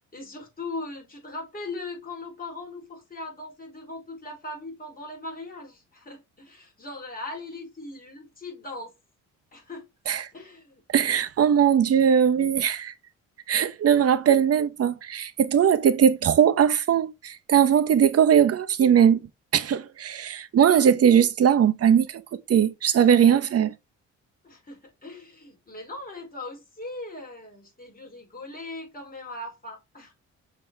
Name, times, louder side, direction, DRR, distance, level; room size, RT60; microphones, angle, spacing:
voice 1, 0.1-8.9 9.5-9.8 10.3-10.8 24.4-30.1, left 2 dB, 30° left, 4.5 m, -39 dB
voice 2, 10.9-12.9 13.5-19.2 19.5-22.2 22.5-23.7, right 8 dB, 50° right, 0.9 m, -20 dB
6.7 x 4.1 x 4.6 m
cardioid pair, 90°, 30 cm